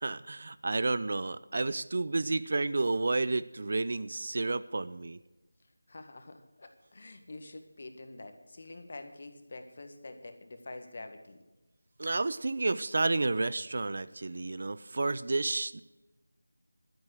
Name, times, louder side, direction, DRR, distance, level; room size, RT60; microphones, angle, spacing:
voice 1, 0.0-5.2 12.0-15.8, right 3 dB, 45° right, 16 dB, 0.5 m, -31 dB
voice 2, 5.9-11.4, left 2 dB, 45° left, 6 dB, 1.7 m, -46 dB
12.0 x 10.5 x 6.3 m, 1.1 s
figure-of-eight pair, 165°, 0 cm